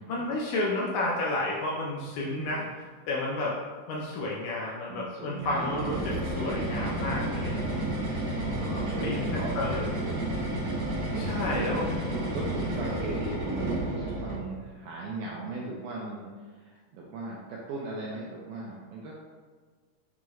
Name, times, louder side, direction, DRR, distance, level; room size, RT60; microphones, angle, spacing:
voice 1, 0.1-2.6 3.1-3.5 3.9-7.8 8.1-9.8 11.1-11.8, left 2 dB, 85° left, -4 dB, 1.7 m, -31 dB
voice 2, 2.2-2.6 4.9-6.5 8.4-10.4 11.1-11.7 12.1-19.1, right 3 dB, 80° right, -4 dB, 1.8 m, -39 dB
sound 1, 5.4-14.5, right 1 dB, 60° right, 2.5 m, -31 dB
6.2 x 2.9 x 2.3 m, 1.5 s
omnidirectional pair, 4.1 m